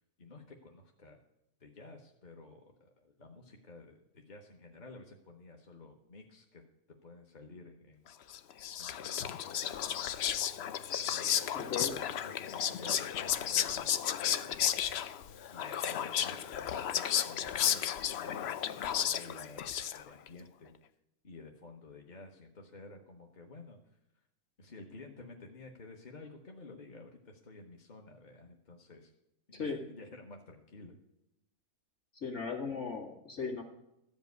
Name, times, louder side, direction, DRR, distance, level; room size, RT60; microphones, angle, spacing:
voice 1, 0.2-1.2 1.6-4.0 4.3-6.6 7.0-8.1 8.8-9.9 11.1-11.8 12.2-15.0 15.5-20.7 21.2-23.8 24.6-29.1 29.5-30.9, left 3 dB, 35° left, 2 dB, 1.1 m, -52 dB
Whispering, 8.3-20.3, left 9 dB, 65° left, 0.6 m, -33 dB
voice 2, 11.5-11.9 29.5-29.8 32.1-33.6, left 5 dB, 50° left, 0 dB, 2.4 m, -37 dB
14.0 x 5.3 x 9.3 m, 0.87 s
omnidirectional pair, 1.6 m